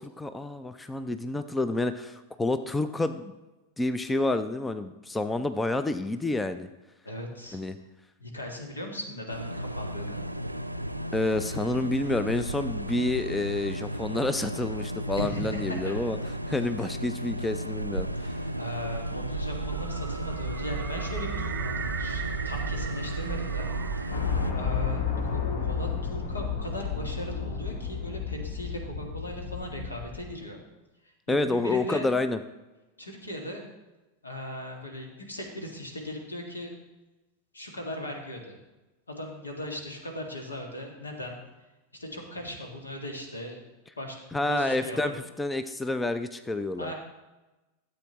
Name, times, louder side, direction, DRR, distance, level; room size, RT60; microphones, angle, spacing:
voice 1, 0.0-3.3 3.8-6.7 7.5-7.8 11.1-16.2 16.5-18.3 31.3-32.4 44.3-46.9, left 2 dB, 10° left, 10 dB, 0.4 m, -29 dB
voice 2, 7.0-7.6 8.2-10.3 15.1-15.9 16.5-16.6 18.2-23.7 24.0-24.1 24.5-30.6 31.3-32.1 33.0-33.6 34.2-36.7 37.5-38.6 39.1-41.4 41.9-43.6 44.0-45.3 46.8-46.9, left 1 dB, 75° left, 2 dB, 1.7 m, -38 dB
Ceiling Fan, 9.3-24.5, equal, 85° right, 0.4 m, -34 dB
sound 1, 18.3-24.4, right 7 dB, 25° right, 0.7 m, -35 dB
sound 2, 24.1-30.3, left 6 dB, 55° left, 1.3 m, -31 dB
13.0 x 7.7 x 3.0 m, 1.1 s
figure-of-eight pair, 90°, 0 cm